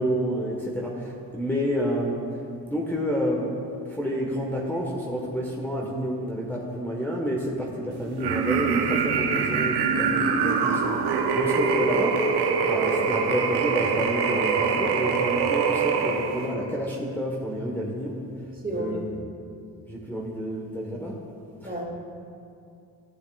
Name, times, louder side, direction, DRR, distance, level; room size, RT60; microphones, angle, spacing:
voice 1, 0.0-2.2 2.7-3.5 3.9-12.2 12.6-18.3 18.7-19.0 19.9-21.2 21.6-21.7, equal, 5° left, -4 dB, 1.3 m, -29 dB
evil laugh, 8.2-16.5, right 5 dB, 75° right, 0.9 m, -24 dB
voice 2, 18.5-19.2 21.6-21.8, right 1 dB, 20° right, -1 dB, 2.1 m, -32 dB
11.5 x 9.3 x 2.4 m, 2.5 s
supercardioid pair, 55°, 40 cm